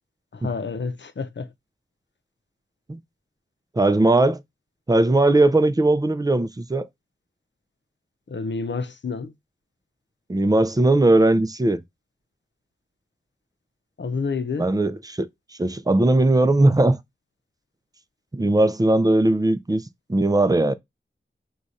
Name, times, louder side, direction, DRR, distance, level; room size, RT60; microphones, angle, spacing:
voice 1, 0.3-1.5 8.3-9.3 14.0-14.7, left 4 dB, 70° left, 0.7 m, -29 dB
voice 2, 3.8-4.4 4.9-6.9 10.3-11.8 14.6-15.3 15.6-17.0 18.3-19.8 20.1-20.7, right 2 dB, 20° right, 0.5 m, -19 dB
4.9 x 2.4 x 4.1 m
wide cardioid pair, 55°, 20 cm